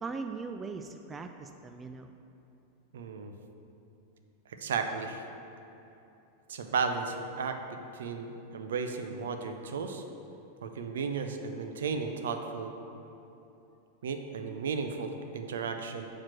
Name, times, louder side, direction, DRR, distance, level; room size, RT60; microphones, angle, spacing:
voice 1, 0.0-2.1, right 4 dB, 20° right, 7 dB, 0.3 m, -39 dB
voice 2, 2.9-3.3 4.5-5.2 6.5-10.0 10.6-12.7 14.0-16.1, right 5 dB, 60° right, 6 dB, 0.6 m, -34 dB
7.3 x 4.8 x 6.2 m, 2.9 s
figure-of-eight pair, 90°, 0 cm